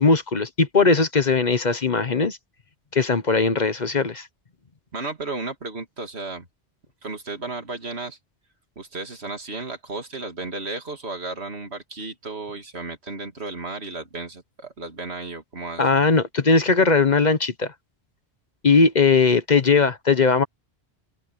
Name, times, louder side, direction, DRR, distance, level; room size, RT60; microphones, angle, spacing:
voice 1, 0.0-2.4 2.9-4.3 15.8-17.7 18.6-20.4, left 4 dB, 45° left, 1.1 m, -19 dB
voice 2, 4.9-6.5 7.0-8.2 8.8-16.0, right 3 dB, 75° right, 2.8 m, -34 dB
omnidirectional pair, 1.1 m